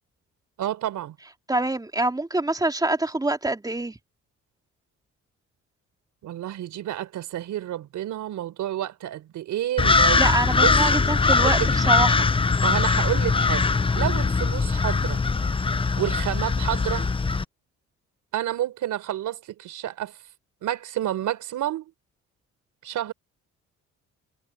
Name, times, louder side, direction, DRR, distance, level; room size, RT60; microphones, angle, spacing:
voice 1, 0.6-1.2 6.2-10.3 10.6-11.7 12.6-13.6 13.9-15.2 16.0-17.1 18.3-20.2 20.6-21.9 22.8-23.1, right 12 dB, 80° right, 4.2 m, -30 dB
voice 2, 1.5-4.0 10.2-12.3, right 2 dB, 10° right, 3.1 m, -25 dB
sound 1, 9.8-17.4, left 4 dB, 15° left, 0.7 m, -21 dB
cardioid pair, 90°, 30 cm